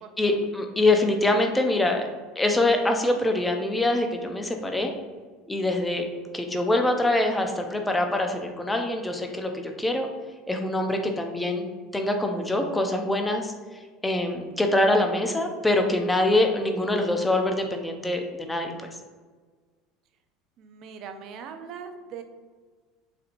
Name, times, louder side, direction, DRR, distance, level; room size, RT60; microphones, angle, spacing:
voice 1, 0.2-2.1 2.4-4.9 5.5-6.1 6.3-10.1 10.5-11.6 11.9-13.5 14.0-18.9, left 1 dB, 10° left, 4 dB, 0.5 m, -24 dB
voice 2, 20.6-22.2, right 6 dB, 55° right, 7 dB, 0.4 m, -40 dB
4.2 x 2.6 x 2.5 m, 1.4 s
supercardioid pair, 100°, 0 cm